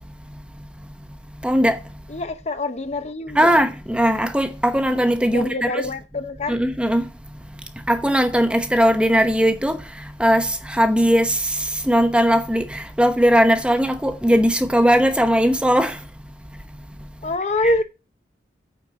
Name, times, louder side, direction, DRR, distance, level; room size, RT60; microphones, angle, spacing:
voice 1, 1.4-1.8 3.4-5.8 6.5-7.0 7.9-9.8 10.2-11.4 11.9-15.9, equal, 5° right, 0.8 m, -18 dB
voice 2, 2.1-3.6 5.3-6.6 17.2-17.8, left 2 dB, 35° left, 0.8 m, -25 dB
9.1 x 4.4 x 6.8 m
head